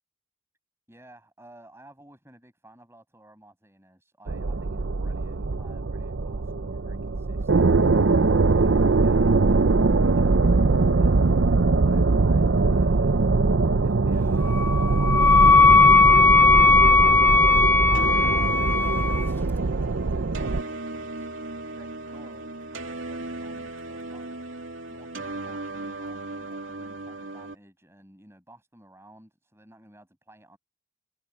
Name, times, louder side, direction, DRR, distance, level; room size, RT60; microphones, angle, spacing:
voice 1, 0.9-8.0 8.5-13.2 13.8-17.2 17.9-21.3 21.7-24.4 24.9-30.6, right 1 dB, 15° right, 6.1 m, -53 dB
sound 1, 4.3-20.6, right 3 dB, 70° right, 0.6 m, -22 dB
Wind instrument woodwind instrument, 14.5-19.3, left 4 dB, 10° left, 0.4 m, -17 dB
sound 2, 17.9-27.5, right 2 dB, 90° right, 2.8 m, -36 dB
head